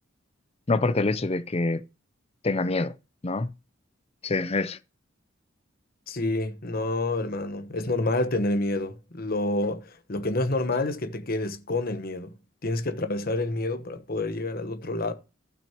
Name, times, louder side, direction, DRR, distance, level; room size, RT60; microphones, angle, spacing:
voice 1, 0.7-1.8 2.4-2.9 3.2-3.5 4.2-4.8, left 3 dB, 30° left, 0.6 m, -25 dB
voice 2, 6.1-12.3 12.6-15.1, left 2 dB, 50° left, 1.0 m, -28 dB
15.5 x 6.1 x 2.9 m
head